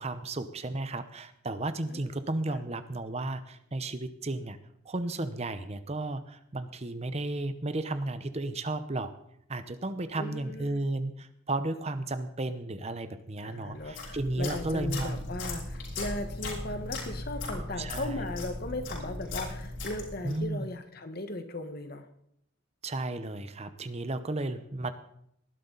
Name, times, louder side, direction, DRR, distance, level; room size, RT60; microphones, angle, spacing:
voice 1, 0.0-4.6 4.8-9.1 9.5-15.3 17.8-18.2 20.2-20.7 22.8-24.9, right 2 dB, 30° right, 11 dB, 0.8 m, -34 dB
voice 2, 10.2-10.8 13.4-22.1, left 2 dB, 50° left, 8 dB, 1.4 m, -37 dB
sound 1, 13.7-20.5, left 2 dB, 70° left, 5.7 m, -38 dB
19.0 x 12.0 x 4.0 m, 0.73 s
head